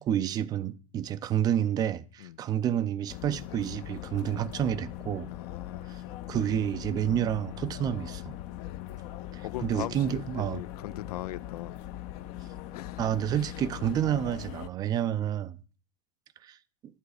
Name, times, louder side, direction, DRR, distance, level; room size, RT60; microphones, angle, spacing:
voice 1, 0.0-5.3 5.9-6.0 6.3-8.4 9.3-10.6 13.0-15.6 16.4-16.6, right 10 dB, 20° right, 0.4 m, -29 dB
sound 1, 3.1-14.7, left 13 dB, 35° left, 0.6 m, -41 dB
voice 2, 5.3-6.0 8.5-9.1 9.4-11.7 12.7-13.1 13.4-13.5, left 14 dB, 85° left, 0.5 m, -40 dB
11.5 x 8.3 x 4.9 m
supercardioid pair, 160°, 20 cm